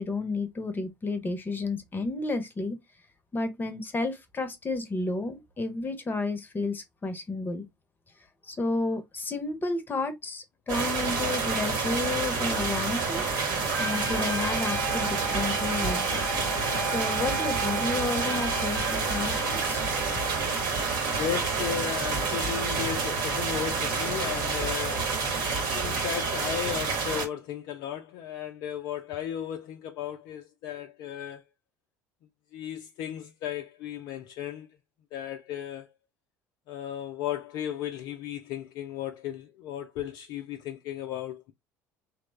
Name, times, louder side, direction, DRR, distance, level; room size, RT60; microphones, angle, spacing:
voice 1, 0.0-2.8 3.3-7.7 8.5-13.3 13.8-16.2 16.6-19.8, left 3 dB, 20° left, 0.7 m, -31 dB
sound 1, 10.7-27.3, right 4 dB, 55° right, 1.0 m, -28 dB
Trumpet, 13.7-20.4, right 2 dB, 75° right, 0.7 m, -36 dB
voice 2, 21.2-31.4 32.5-34.7 35.1-35.9 36.7-41.5, left 10 dB, 55° left, 0.4 m, -35 dB
3.0 x 2.1 x 3.1 m
figure-of-eight pair, 60°, 9 cm